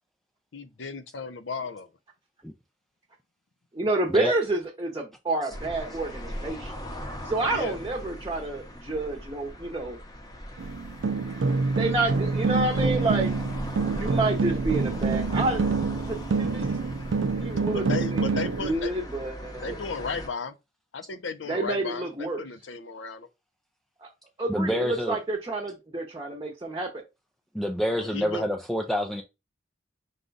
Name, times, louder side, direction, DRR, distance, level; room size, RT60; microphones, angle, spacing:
voice 1, 0.5-1.9 7.4-7.8 17.7-19.0 19.6-20.6 20.9-23.3 28.0-28.5, left 4 dB, 85° left, 0.6 m, -35 dB
voice 2, 3.7-6.7 7.2-10.0 11.8-13.3 14.0-15.6 16.1-16.7 17.4-17.9 18.1-19.7 21.5-22.4 24.0-24.1 24.4-27.0, right 2 dB, 25° right, 0.8 m, -29 dB
sound 1, 5.5-20.3, equal, 20° left, 0.8 m, -39 dB
sound 2, 10.6-18.8, right 4 dB, 85° right, 0.5 m, -27 dB
voice 3, 24.5-25.2 27.5-29.2, equal, ahead, 0.3 m, -27 dB
4.9 x 2.3 x 3.9 m
head